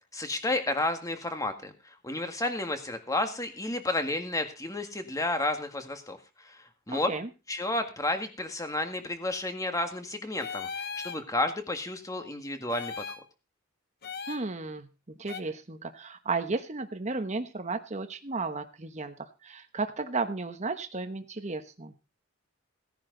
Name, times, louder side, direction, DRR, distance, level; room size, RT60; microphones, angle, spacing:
voice 1, 0.1-7.1 7.5-13.2, left 2 dB, 15° left, 6 dB, 1.7 m, -32 dB
voice 2, 6.9-7.3 14.3-14.9 15.2-21.9, right 3 dB, 35° right, 7 dB, 1.2 m, -34 dB
sound 1, 10.4-11.2 12.7-13.2 14.0-14.4 15.3-15.4, left 6 dB, 50° left, 0.9 m, -37 dB
16.5 x 10.0 x 3.9 m, 0.31 s
head